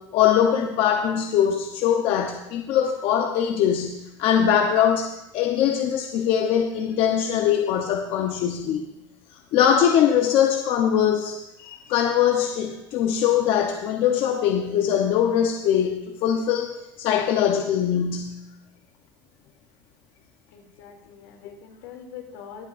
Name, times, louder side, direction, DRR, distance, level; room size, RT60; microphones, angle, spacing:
voice 1, 0.0-8.8 9.5-16.7 17.0-18.4, left 9 dB, 55° left, 3 dB, 1.0 m, -22 dB
voice 2, 20.5-22.7, left 8 dB, 85° left, 1 dB, 2.8 m, -43 dB
23.0 x 8.5 x 2.6 m, 0.89 s
supercardioid pair, 125°, 11 cm